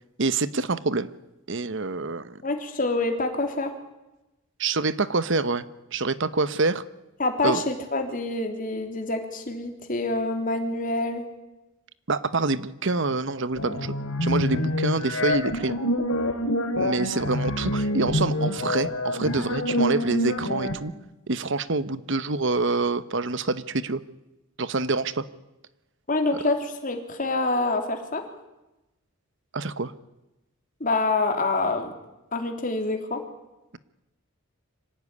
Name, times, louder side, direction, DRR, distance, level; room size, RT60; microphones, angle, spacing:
voice 1, 0.2-1.1 1.5-2.4 4.6-5.6 5.9-6.8 7.4-7.6 12.1-13.9 14.2-15.8 16.7-20.9 21.3-24.0 24.6-25.2 29.5-29.9, right 3 dB, 60° right, 15 dB, 1.1 m, -26 dB
voice 2, 2.4-3.7 7.2-11.2 26.1-28.2 30.8-31.9 32.3-33.2, left 2 dB, 40° left, 4 dB, 3.3 m, -26 dB
sound 1, 13.6-20.7, left 1 dB, 80° left, 2.9 m, -26 dB
25.0 x 16.0 x 9.8 m, 0.99 s
head